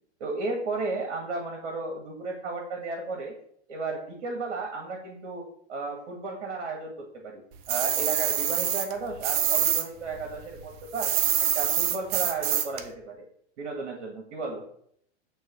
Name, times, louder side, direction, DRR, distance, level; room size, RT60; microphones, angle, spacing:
voice 1, 0.2-3.3 3.7-7.4 7.7-11.1 11.4-13.3 13.6-14.6, right 3 dB, 65° right, 1 dB, 2.0 m, -34 dB
sound 1, 7.7-9.8 10.1-12.8, right 9 dB, 45° right, 0.9 m, -26 dB
8.9 x 3.1 x 6.6 m, 0.66 s
hypercardioid pair, 115°, 35 cm